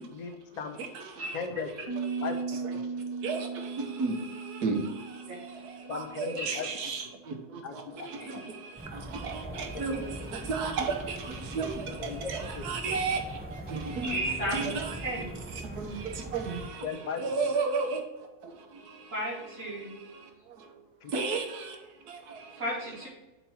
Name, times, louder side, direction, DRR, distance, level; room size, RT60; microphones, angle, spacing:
voice 1, 0.0-0.8 1.3-1.7 2.2-2.4 2.7-2.8 5.9-6.7 7.6-8.4 9.5-10.5 12.0-12.7 16.8-17.3 21.0-21.1, left 6 dB, 45° left, 0.5 m, -38 dB
voice 2, 0.8-1.4 2.0-2.8 3.2-18.0 18.4-19.1 19.7-20.8 21.1-22.6, right 4 dB, 75° right, 1.4 m, -35 dB
Piano, 1.9-7.5, right 4 dB, 20° left, 2.2 m, -38 dB
sound 1, 8.8-16.7, right 1 dB, 10° right, 0.5 m, -42 dB
voice 3, 14.0-15.4 19.1-19.9 22.6-23.1, right 1 dB, 55° right, 2.0 m, -33 dB
4.4 x 4.3 x 5.4 m
omnidirectional pair, 1.7 m